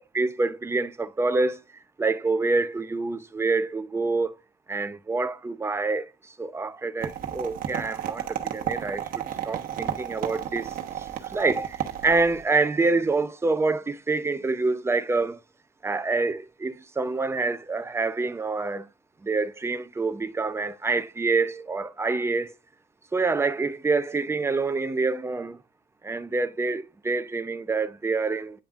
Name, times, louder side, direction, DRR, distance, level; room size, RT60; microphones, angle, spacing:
voice 1, 0.0-1.6 2.0-4.3 4.7-6.1 6.4-15.4 15.8-18.9 19.2-22.5 23.1-25.6 26.0-28.6, right 3 dB, 15° right, 0.7 m, -27 dB
sound 1, 7.0-12.4, right 10 dB, 55° right, 1.2 m, -33 dB
8.8 x 5.4 x 2.5 m
cardioid pair, 110°, 17 cm